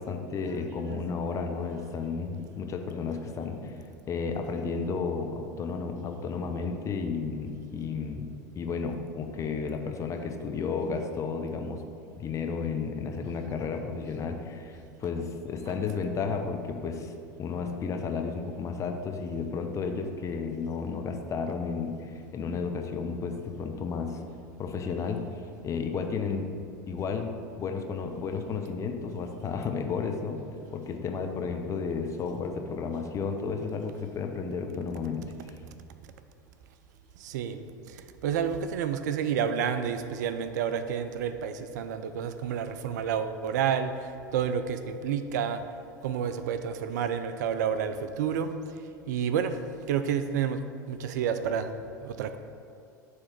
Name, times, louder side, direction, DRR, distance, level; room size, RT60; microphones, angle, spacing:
voice 1, 0.0-3.8 4.1-8.3 8.5-11.8 12.2-17.1 17.4-24.2 24.6-25.2 25.6-26.5 26.9-30.4 30.7-35.2, left 5 dB, 30° left, 4 dB, 0.7 m, -32 dB
voice 2, 37.2-37.6 38.2-43.9 44.3-45.6 46.0-48.5 49.1-49.6 49.9-50.6 50.9-51.7 52.0-52.4, right 8 dB, 65° right, 10 dB, 0.4 m, -29 dB
7.2 x 3.2 x 5.9 m, 2.6 s
figure-of-eight pair, 80°, 10 cm